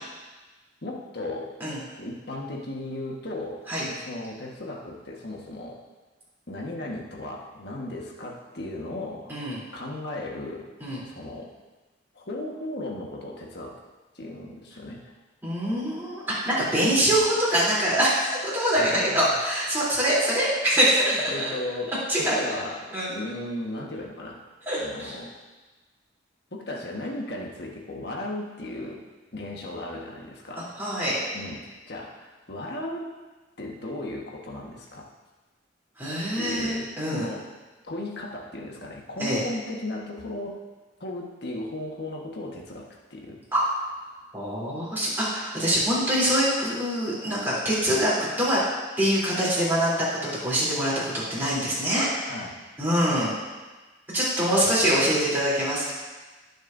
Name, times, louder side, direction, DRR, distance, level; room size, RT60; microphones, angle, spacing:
voice 1, 0.8-1.5 2.0-3.6 3.9-5.8 6.5-9.3 9.7-10.7 11.0-11.5 12.1-13.8 14.1-15.1 18.8-19.4 20.8-20.9 21.3-24.4 24.8-25.3 26.5-29.0 29.3-30.8 31.3-33.1 33.6-35.1 36.4-37.5 37.8-40.6 41.0-43.4 52.3-52.6, left 1 dB, 60° left, -1 dB, 1.5 m, -36 dB
voice 2, 9.3-9.6 10.8-11.0 15.4-21.2 22.1-22.3 22.9-23.1 24.7-25.2 30.6-31.2 36.0-37.3 39.2-39.4 43.5-43.6 44.3-48.6 49.0-50.1 50.4-52.1 52.8-53.3 54.1-55.9, equal, 10° right, -8 dB, 3.4 m, -24 dB
18.0 x 6.6 x 2.7 m, 1.2 s
head